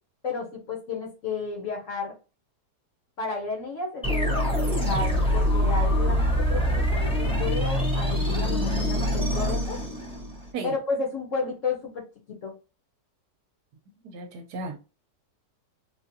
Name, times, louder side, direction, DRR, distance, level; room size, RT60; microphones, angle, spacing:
voice 1, 0.2-2.2 3.2-9.8 10.6-12.0 12.4-12.5, left 4 dB, 55° left, 1.2 m, -32 dB
sound 1, 4.0-10.5, equal, 5° left, 0.5 m, -24 dB
voice 2, 14.0-14.8, right 3 dB, 75° right, 1.2 m, -35 dB
3.6 x 2.4 x 2.7 m
omnidirectional pair, 1.8 m